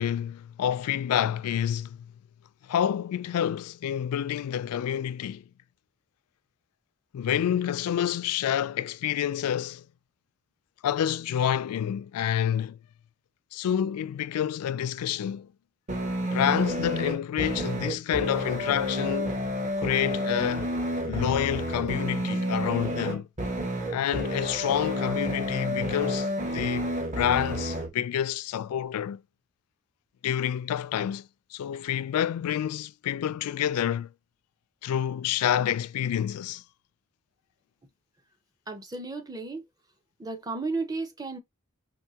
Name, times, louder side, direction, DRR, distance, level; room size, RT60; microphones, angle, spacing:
voice 1, 0.0-2.1 2.7-5.4 7.1-9.8 10.8-12.8 13.5-15.5 16.3-19.4 19.8-20.7 21.1-23.3 23.9-29.2 30.2-34.1 34.8-36.6, left 10 dB, 90° left, 0.3 m, -28 dB
sound 1, 15.9-27.9, equal, 35° right, 1.0 m, -30 dB
voice 2, 38.7-39.6 40.2-41.4, right 3 dB, 15° right, 0.7 m, -33 dB
4.5 x 2.6 x 2.8 m
head